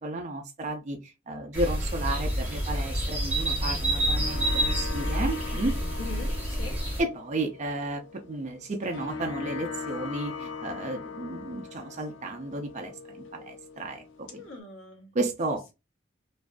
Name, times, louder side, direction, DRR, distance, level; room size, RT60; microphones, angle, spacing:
voice 1, 0.0-5.7 7.0-14.4 15.1-15.6, right 2 dB, 40° right, 0.4 m, -33 dB
sound 1, 1.5-7.0, right 1 dB, 10° right, 1.0 m, -28 dB
sound 2, 3.6-14.6, left 5 dB, 70° left, 0.5 m, -41 dB
voice 2, 6.0-6.8 14.3-15.1, left 3 dB, 90° left, 0.9 m, -42 dB
2.6 x 2.3 x 2.2 m
head